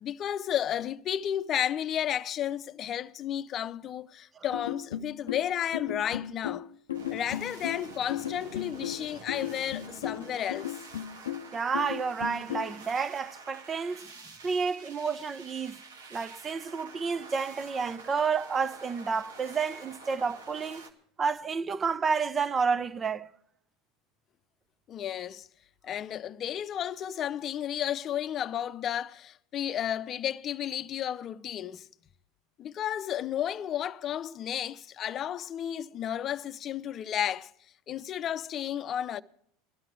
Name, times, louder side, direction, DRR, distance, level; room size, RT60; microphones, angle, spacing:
voice 1, 0.0-6.7 7.1-10.8 24.9-25.5 25.8-31.9 32.6-37.5 37.9-39.2, left 10 dB, 40° left, 0.6 m, -32 dB
sound 1, 4.5-12.8, left 11 dB, 85° left, 0.5 m, -36 dB
sound 2, 6.9-20.9, right 3 dB, 90° right, 1.8 m, -48 dB
voice 2, 11.5-14.1 14.4-15.8 16.1-20.9 21.2-23.3, right 5 dB, 25° right, 0.7 m, -30 dB
17.0 x 12.5 x 4.7 m
hypercardioid pair, 90°, 0 cm